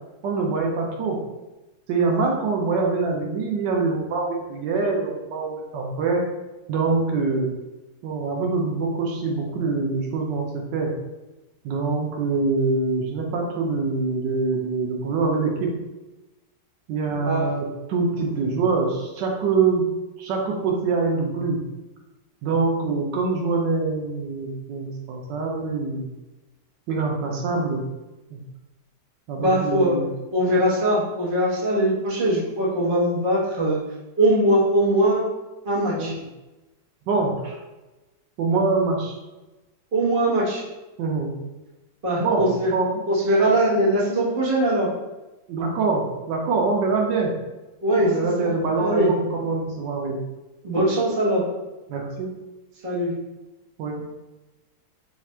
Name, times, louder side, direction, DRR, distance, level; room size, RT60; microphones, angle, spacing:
voice 1, 0.2-1.2 1.9-6.2 6.7-7.5 8.0-10.9 11.6-15.7 16.9-19.8 20.2-21.6 22.4-26.1 26.9-27.8 28.3-28.4 29.3-30.0 36.0-36.1 37.1-37.6 38.4-39.2 41.0-41.4 42.2-43.0 45.5-47.3 48.0-50.2 51.9-52.3 53.8-54.0, right 4 dB, 85° right, 0 dB, 1.4 m, -24 dB
voice 2, 29.4-30.0 30.3-33.8 34.2-35.2 35.6-36.1 39.9-40.6 42.0-42.7 43.1-44.9 47.8-48.5 48.8-49.1 50.6-51.4 52.8-53.1, right 1 dB, 35° right, -6 dB, 1.1 m, -21 dB
3.5 x 2.4 x 4.2 m, 1.1 s
omnidirectional pair, 1.9 m